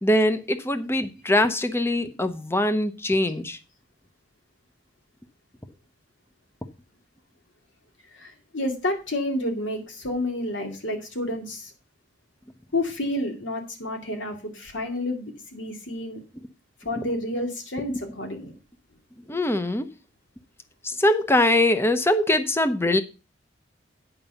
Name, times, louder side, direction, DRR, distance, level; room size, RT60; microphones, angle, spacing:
voice 1, 0.0-3.6 16.9-17.0 19.3-19.9 20.8-23.0, left 1 dB, 15° left, 10 dB, 0.7 m, -22 dB
voice 2, 8.1-11.7 12.7-16.2 16.8-18.5, left 1 dB, 75° left, 4 dB, 2.5 m, -30 dB
8.9 x 5.4 x 6.8 m, 0.32 s
head